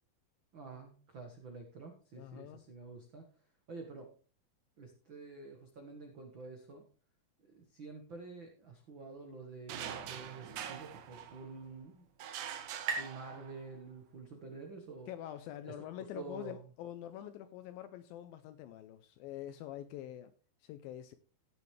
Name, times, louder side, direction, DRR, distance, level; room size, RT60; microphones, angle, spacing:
voice 1, 0.5-3.3 3.7-4.1 4.8-6.8 7.5-12.0 13.0-15.1 15.6-15.7 16.1-16.6, right 4 dB, 90° right, 1.0 m, -48 dB
voice 2, 2.2-2.6 15.1-20.3 20.6-21.2, left 12 dB, 80° left, 2.1 m, -45 dB
sound 1, 9.7-11.7 12.2-13.8, right 9 dB, 70° right, 2.0 m, -44 dB
sound 2, 11.4-14.8, right 4 dB, 45° right, 2.7 m, -44 dB
16.5 x 7.0 x 3.2 m
omnidirectional pair, 4.7 m